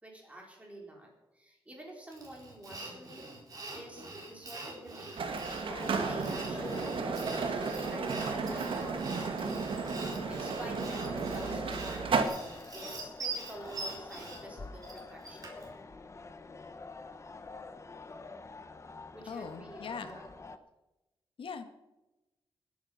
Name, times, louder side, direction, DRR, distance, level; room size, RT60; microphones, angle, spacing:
voice 1, 0.0-3.4 3.7-5.3 5.6-9.6 9.9-12.0 12.7-15.6 19.1-20.3, right 1 dB, 15° right, -1 dB, 4.4 m, -49 dB
Sawing, 2.1-15.7, right 3 dB, 40° right, 4.3 m, -44 dB
sound 1, 5.2-12.2, right 4 dB, 75° right, 1.9 m, -33 dB
sound 2, 5.7-20.6, left 3 dB, 30° left, 1.0 m, -47 dB
voice 2, 19.3-20.1 21.4-21.7, left 5 dB, 70° left, 8 dB, 1.6 m, -41 dB
19.5 x 9.5 x 5.8 m, 1.0 s
wide cardioid pair, 135°, 9 cm